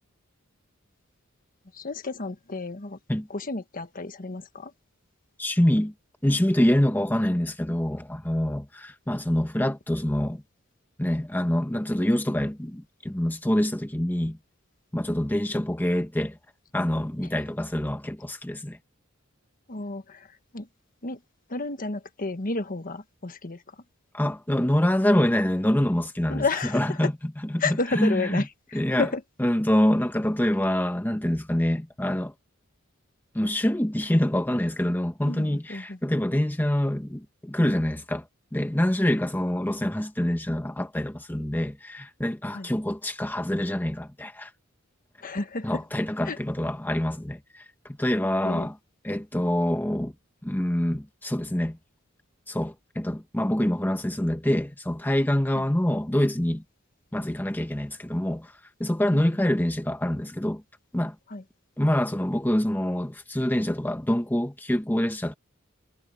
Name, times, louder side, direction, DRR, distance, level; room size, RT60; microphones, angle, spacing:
voice 1, 1.7-3.0 3.3-4.7 19.7-20.7 21.0-21.2 21.5-23.8 26.3-27.1 27.6-29.2 35.3-36.0 42.5-42.7 45.2-45.8 46.2-46.4 48.4-48.7 55.5-55.6 59.1-59.2 61.3-61.4, left 3 dB, 45° left, 1.4 m, -31 dB
voice 2, 5.4-5.9 6.2-10.4 11.0-14.4 14.9-16.4 16.7-18.8 24.1-26.4 26.7-27.1 27.5-28.4 28.7-29.1 29.4-32.3 33.3-38.2 38.5-44.5 45.6-48.8 49.0-50.1 50.4-51.8 52.5-56.6 57.1-58.5 58.8-60.6 60.9-61.1 61.8-65.3, left 1 dB, 10° left, 1.0 m, -25 dB
head